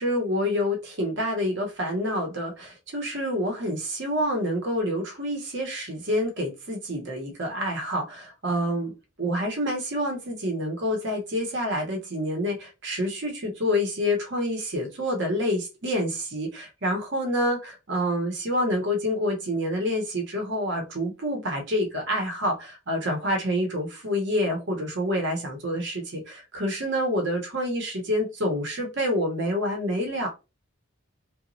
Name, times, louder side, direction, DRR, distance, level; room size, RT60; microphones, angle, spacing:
voice 1, 0.0-8.9 9.2-30.3, equal, 60° right, 2 dB, 0.9 m, -27 dB
2.9 x 2.2 x 2.6 m, 0.27 s
head